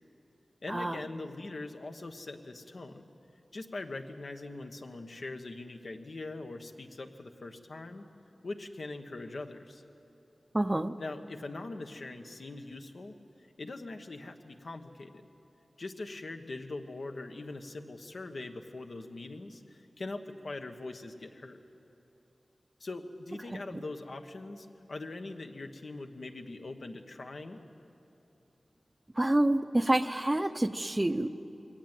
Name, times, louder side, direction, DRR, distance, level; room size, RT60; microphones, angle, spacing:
voice 1, 0.6-3.0 3.5-8.0 8.4-9.8 11.0-13.1 13.6-15.2 15.8-21.6 22.8-27.6, left 2 dB, 65° left, 5 dB, 1.3 m, -42 dB
voice 2, 10.5-10.9 29.2-31.3, right 1 dB, 20° right, 10 dB, 0.7 m, -27 dB
22.5 x 17.5 x 9.1 m, 3.0 s
wide cardioid pair, 100°, 0 cm